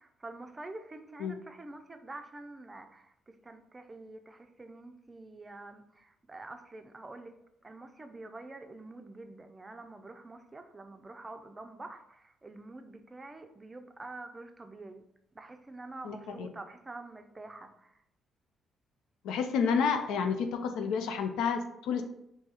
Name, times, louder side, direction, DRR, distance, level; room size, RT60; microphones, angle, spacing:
voice 1, 0.0-7.3 7.6-15.0 15.3-17.9, right 2 dB, 20° right, 7 dB, 0.4 m, -47 dB
voice 2, 16.0-16.5 19.2-22.0, left 6 dB, 90° left, 6 dB, 0.4 m, -30 dB
2.7 x 2.3 x 4.2 m, 0.77 s
cardioid pair, 90°, 0 cm